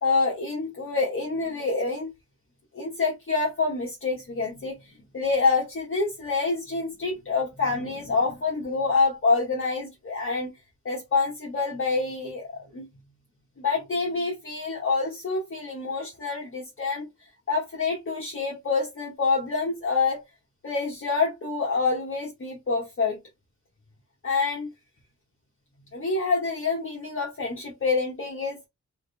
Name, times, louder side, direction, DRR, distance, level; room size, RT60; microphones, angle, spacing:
voice 1, 0.0-2.1 2.7-10.5 10.8-12.9 13.6-17.1 17.5-20.2 20.6-23.2 24.2-24.7 25.9-28.7, left 4 dB, 45° left, 1.2 m, -27 dB
3.6 x 2.6 x 3.4 m
wide cardioid pair, 105°, 29 cm